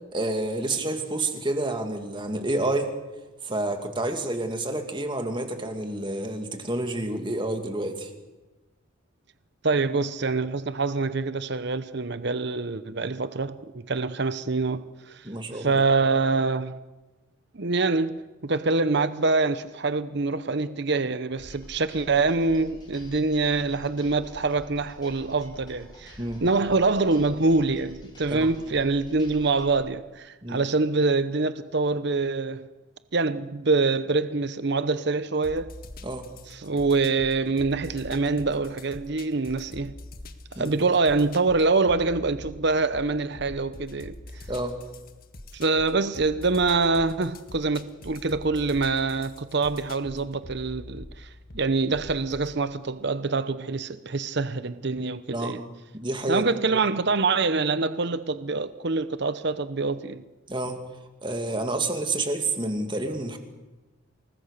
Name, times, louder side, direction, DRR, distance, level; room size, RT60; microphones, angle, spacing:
voice 1, 0.1-2.9 3.4-8.1 15.2-15.8 26.2-26.4 28.3-28.5 30.4-30.6 36.0-36.3 40.6-40.8 44.5-44.8 55.3-55.6 55.9-56.5 56.7-56.8 60.5-60.8 61.2-63.4, right 2 dB, 25° right, 2.5 m, -29 dB
voice 2, 9.6-13.6 13.9-15.3 15.5-16.8 17.5-32.7 33.1-35.7 36.5-39.9 40.6-44.1 45.5-55.6 56.3-60.2, right 3 dB, 55° right, 0.8 m, -25 dB
sound 1, 21.4-29.7, left 1 dB, 20° left, 5.2 m, -47 dB
sound 2, 35.4-52.6, left 1 dB, 45° left, 1.6 m, -44 dB
28.5 x 20.0 x 6.7 m
head